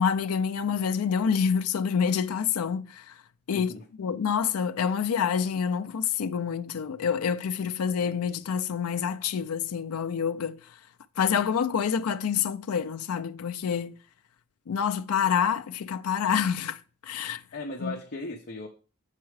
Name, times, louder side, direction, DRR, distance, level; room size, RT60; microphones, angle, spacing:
voice 1, 0.0-3.2 3.5-3.7 4.0-10.8 11.2-13.9 14.7-17.4 17.8-17.9, left 7 dB, 70° left, 0.4 m, -27 dB
voice 2, 3.5-3.8 17.5-18.7, left 2 dB, 45° left, 0.8 m, -37 dB
7.4 x 4.7 x 4.7 m
head